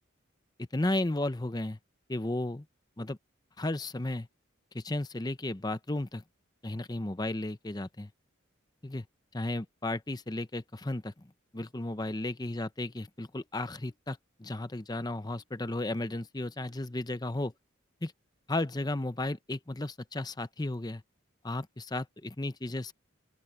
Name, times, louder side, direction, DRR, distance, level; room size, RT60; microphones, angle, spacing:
voice 1, 0.7-1.8 2.1-2.6 3.0-3.2 3.6-4.3 4.7-6.2 6.6-8.1 8.8-9.0 9.3-11.3 11.5-17.5 18.0-18.1 18.5-21.0 21.4-22.9, left 2 dB, 20° left, 0.7 m, -34 dB
open air
head